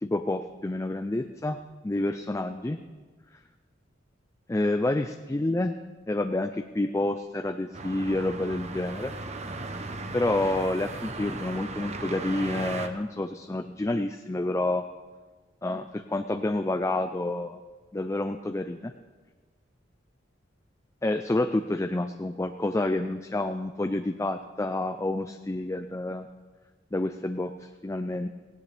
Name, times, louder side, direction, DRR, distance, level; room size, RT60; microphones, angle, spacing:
voice 1, 0.0-2.8 4.5-5.8 6.1-9.1 10.1-14.9 15.6-17.6 17.9-18.9 21.0-26.3 26.9-28.3, left 2 dB, 15° left, 7 dB, 0.4 m, -29 dB
sound 1, 7.7-12.9, right 3 dB, 35° right, 0.8 m, -37 dB
17.5 x 17.5 x 3.4 m, 1.4 s
head